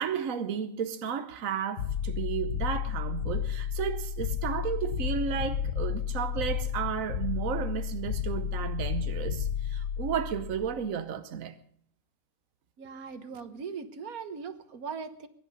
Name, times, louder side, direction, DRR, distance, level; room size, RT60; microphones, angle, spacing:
voice 1, 0.0-11.6, right 8 dB, 70° right, 1.3 m, -33 dB
sound 1, 1.8-10.9, left 8 dB, 75° left, 1.4 m, -32 dB
voice 2, 12.8-15.3, right 5 dB, 90° right, 1.7 m, -39 dB
22.0 x 11.0 x 5.4 m
omnidirectional pair, 1.5 m